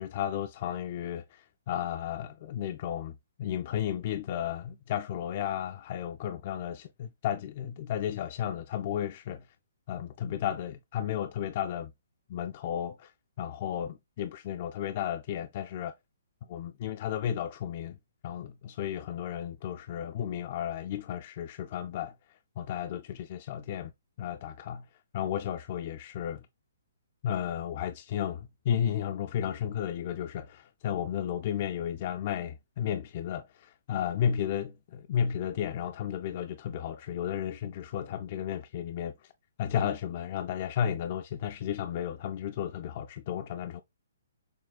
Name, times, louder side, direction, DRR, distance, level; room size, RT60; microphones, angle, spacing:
voice 1, 0.0-9.5 9.9-11.9 12.3-13.1 13.4-15.9 16.5-18.0 18.2-22.1 22.6-23.9 24.2-24.9 25.1-26.5 27.2-39.3 39.6-43.8, left 9 dB, 40° left, 0.3 m, -33 dB
6.1 x 2.2 x 2.3 m
figure-of-eight pair, 130°, 0 cm